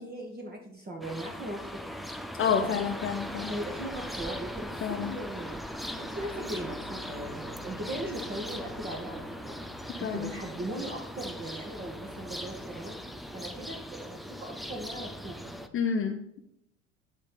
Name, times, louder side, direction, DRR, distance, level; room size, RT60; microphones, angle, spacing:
voice 1, 0.0-1.7 2.6-2.9 3.5-5.6 5.9-9.6 10.0-12.9 13.3-15.5, right 1 dB, 25° right, 0 dB, 1.4 m, -39 dB
sound 1, 1.0-15.7, equal, ahead, 0.5 m, -39 dB
voice 2, 2.3-3.5 4.8-5.1 10.0-10.3 15.7-16.4, left 7 dB, 35° left, 3 dB, 0.8 m, -29 dB
9.7 x 3.3 x 5.7 m, 0.77 s
hypercardioid pair, 70°, 37 cm